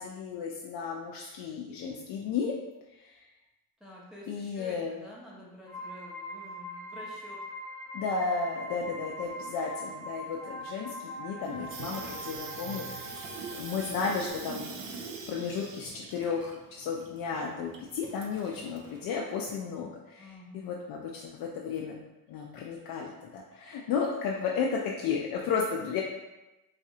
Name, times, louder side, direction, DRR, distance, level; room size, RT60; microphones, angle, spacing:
voice 1, 0.0-2.5 3.0-3.2 4.3-5.0 7.9-13.2 13.5-14.6 15.3-22.0 22.3-26.0, left 5 dB, 65° left, -1 dB, 0.5 m, -33 dB
voice 2, 3.8-7.4 20.2-20.9, left 1 dB, ahead, -6 dB, 0.6 m, -49 dB
sound 1, 5.7-14.3, equal, 85° right, 1.2 m, -42 dB
Water tap faucet / Sink (filling or washing), 11.5-19.0, right 5 dB, 60° right, 0.5 m, -43 dB
4.1 x 2.4 x 2.7 m, 1.0 s
cardioid pair, 165°, 37 cm